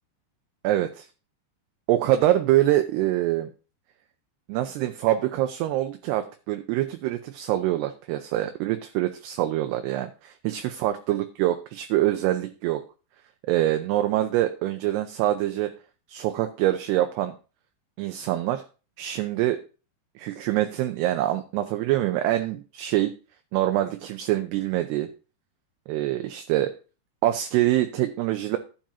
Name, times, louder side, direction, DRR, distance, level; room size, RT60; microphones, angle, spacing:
voice 1, 0.6-1.1 1.9-3.5 4.5-12.8 13.5-15.7 16.1-17.3 18.0-18.6 19.0-19.6 20.2-23.1 23.5-25.1 25.9-26.7 27.2-28.6, right 14 dB, 80° right, 7 dB, 2.5 m, -25 dB
12.0 x 8.9 x 2.8 m, 0.34 s
omnidirectional pair, 5.2 m